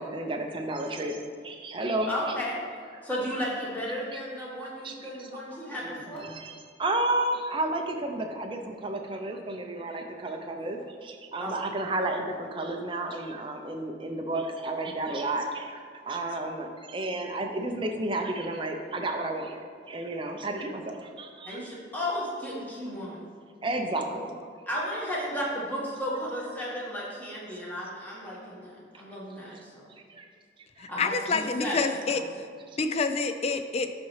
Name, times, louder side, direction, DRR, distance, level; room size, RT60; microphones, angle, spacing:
voice 1, 0.0-2.4 3.9-4.2 4.8-21.6 23.6-24.5 27.7-27.8 30.1-30.3 30.8-30.9, right 2 dB, 25° right, 3 dB, 0.5 m, -32 dB
voice 2, 2.1-2.6 3.0-6.3 11.4-11.7 21.5-23.2 24.7-29.8 30.9-32.1, equal, 10° left, -6 dB, 1.4 m, -34 dB
voice 3, 30.8-32.5 32.8-33.9, left 4 dB, 30° left, 9 dB, 0.3 m, -28 dB
12.0 x 4.2 x 3.2 m, 2.1 s
head